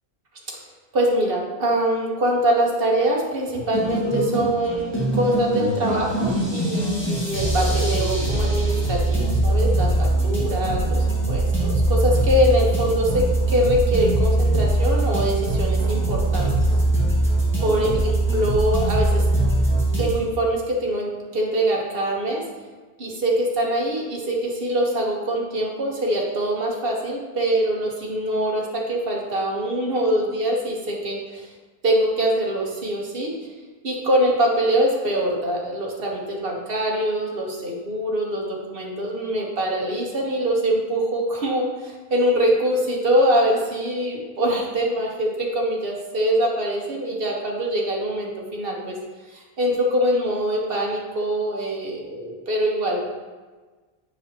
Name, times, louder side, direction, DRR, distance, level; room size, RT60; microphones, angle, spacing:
voice 1, 0.9-16.5 17.6-19.2 20.0-22.4 23.0-31.5 31.8-33.3 33.8-49.0 49.3-53.0, right 1 dB, 65° right, -2 dB, 1.4 m, -23 dB
sound 1, 3.5-20.1, right 2 dB, 10° left, 1.8 m, -22 dB
7.4 x 6.2 x 2.9 m, 1.3 s
omnidirectional pair, 1.0 m